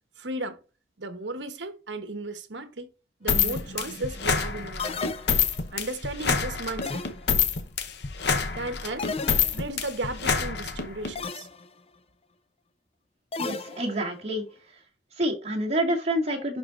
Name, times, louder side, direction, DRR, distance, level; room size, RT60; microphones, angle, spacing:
voice 1, 0.2-0.6 1.0-2.9 3.2-5.1 5.7-7.1 8.5-9.1 9.5-11.5, right 2 dB, 75° right, 1.1 m, -35 dB
sound 1, 3.3-11.1, left 6 dB, 65° left, 1.0 m, -27 dB
sound 2, 4.8-5.8 6.8-7.6 9.0-9.9 11.2-11.7 13.3-14.2, left 4 dB, 35° left, 0.5 m, -34 dB
voice 2, 13.4-14.5 15.1-16.6, right 1 dB, 35° right, 2.1 m, -27 dB
11.0 x 4.1 x 2.5 m
head